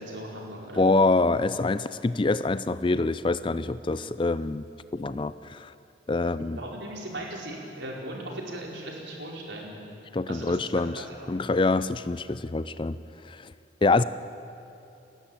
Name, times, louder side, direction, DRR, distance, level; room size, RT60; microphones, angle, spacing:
voice 1, 0.0-0.9 6.5-9.8 10.3-11.2, right 1 dB, 70° right, -2 dB, 4.8 m, -38 dB
voice 2, 0.8-4.7 4.9-5.7 6.1-6.6 10.1-12.9 13.2-13.5 13.8-14.0, left 3 dB, 25° left, 14 dB, 0.4 m, -25 dB
29.5 x 13.0 x 8.9 m, 2.9 s
head